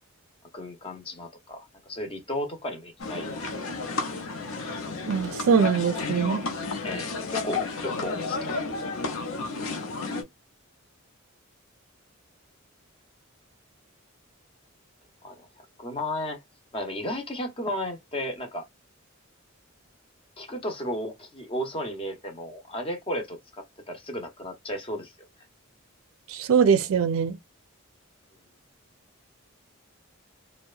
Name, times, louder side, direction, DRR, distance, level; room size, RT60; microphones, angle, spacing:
voice 1, 0.5-3.3 6.8-8.6 15.2-16.4 16.7-18.6 20.4-25.1, equal, 25° left, 0.6 m, -34 dB
sound 1, 3.0-10.2, left 4 dB, 75° left, 0.6 m, -32 dB
voice 2, 5.1-6.4 26.3-27.4, right 6 dB, 80° right, 0.4 m, -22 dB
2.7 x 2.1 x 2.3 m
head